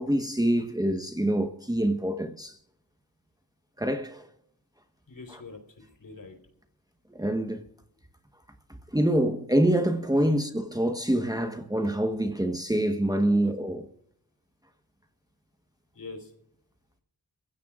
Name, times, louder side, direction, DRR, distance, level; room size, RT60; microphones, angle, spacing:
voice 1, 0.0-2.5 3.8-4.3 7.1-7.6 8.9-13.8, right 1 dB, 10° right, 1.2 m, -26 dB
voice 2, 5.1-6.4 10.2-10.4 13.2-13.5 15.9-16.3, left 3 dB, 60° left, 4.2 m, -44 dB
26.5 x 16.0 x 2.5 m
cardioid pair, 60°, 38 cm